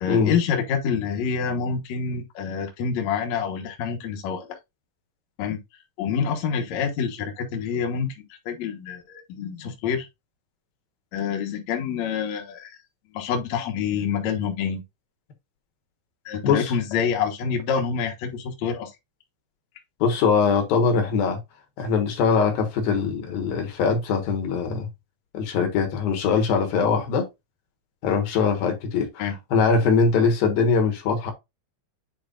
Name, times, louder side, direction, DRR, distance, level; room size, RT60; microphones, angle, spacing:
voice 1, 0.0-4.5 5.4-5.6 6.0-10.1 11.1-12.7 13.1-14.8 16.3-18.9 29.2-29.3, left 6 dB, 60° left, 2.2 m, -27 dB
voice 2, 16.4-16.7 20.0-21.4 21.8-24.9 25.3-27.3 28.0-31.3, left 5 dB, 75° left, 3.2 m, -22 dB
8.7 x 4.7 x 2.5 m
omnidirectional pair, 4.2 m